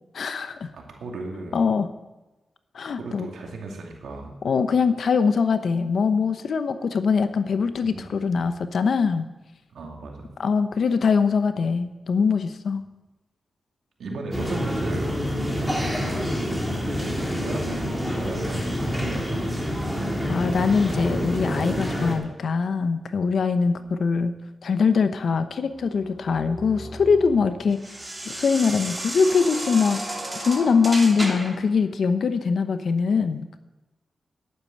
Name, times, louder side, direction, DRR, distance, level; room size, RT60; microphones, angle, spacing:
voice 1, 0.1-0.7 1.5-1.9 2.7-3.3 4.4-9.3 10.4-12.8 20.3-24.3 24.6-30.0 30.4-33.6, left 5 dB, 75° left, 10 dB, 0.9 m, -22 dB
voice 2, 0.7-1.6 3.0-4.3 7.9-8.0 9.7-10.3 14.0-15.1 15.8-16.2 17.4-17.8 18.3-19.4 23.7-23.9, right 2 dB, 90° right, 1 dB, 2.4 m, -36 dB
sound 1, 14.3-22.1, equal, ahead, 4.0 m, -27 dB
sound 2, 25.8-31.7, right 1 dB, 20° right, 2.9 m, -34 dB
11.0 x 9.8 x 7.9 m, 1.1 s
cardioid pair, 70°, 0 cm